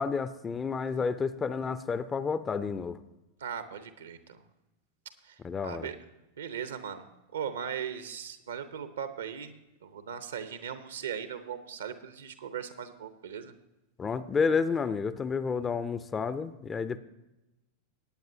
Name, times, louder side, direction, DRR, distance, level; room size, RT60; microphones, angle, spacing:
voice 1, 0.0-3.0 5.4-5.9 14.0-17.0, left 5 dB, 20° left, 14 dB, 0.5 m, -30 dB
voice 2, 3.4-4.4 5.2-6.0 6.4-7.1 7.3-9.5 9.8-13.5, right 8 dB, 65° right, 11 dB, 1.0 m, -38 dB
18.5 x 9.1 x 2.8 m, 0.99 s
figure-of-eight pair, 90°, 0 cm